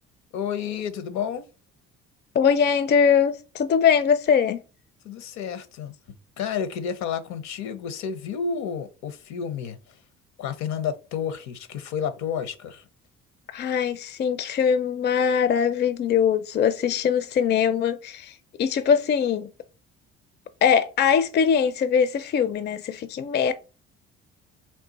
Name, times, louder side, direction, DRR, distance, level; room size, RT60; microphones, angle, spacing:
voice 1, 0.3-1.4 5.0-5.9 6.4-9.8 10.4-12.8, left 7 dB, 70° left, 0.7 m, -30 dB
voice 2, 2.3-4.6 13.5-19.5 20.6-23.5, left 7 dB, 35° left, 0.4 m, -22 dB
3.7 x 2.4 x 3.9 m
supercardioid pair, 70°, 30 cm